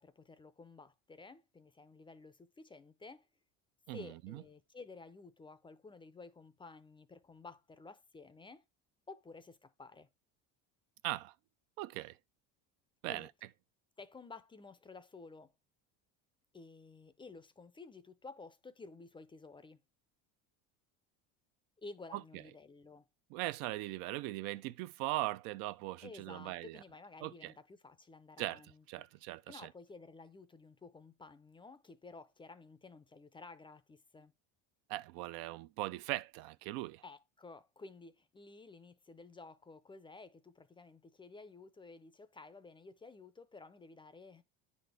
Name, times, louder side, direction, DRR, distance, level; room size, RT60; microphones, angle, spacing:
voice 1, 0.0-3.3 3.9-8.6 9.1-10.1 13.1-13.3 14.0-15.5 16.5-19.8 21.8-23.1 26.0-29.0 29.5-34.3 37.0-44.4, left 3 dB, 15° left, 0.4 m, -53 dB
voice 2, 3.9-4.4 11.0-11.3 11.8-12.2 13.0-13.3 22.1-22.2 23.3-26.8 27.2-27.5 28.4-28.6 28.9-29.7 34.9-37.0, right 17 dB, 80° right, 0.5 m, -39 dB
9.3 x 4.2 x 3.3 m
cardioid pair, 125°, 35 cm